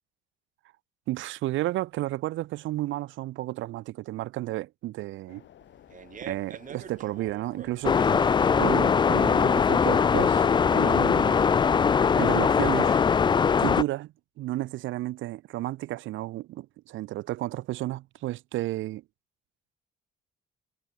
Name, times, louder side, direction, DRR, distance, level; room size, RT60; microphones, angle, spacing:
voice 1, 1.1-5.4 6.2-11.4 12.2-13.0 13.6-19.0, right 16 dB, 70° right, 0.5 m, -32 dB
sound 1, 5.3-11.8, left 11 dB, 60° left, 3.6 m, -53 dB
Fart, 5.6-13.6, right 7 dB, 40° right, 1.7 m, -46 dB
sound 2, 7.8-13.8, left 6 dB, 20° left, 0.3 m, -21 dB
cardioid pair, 125°, 21 cm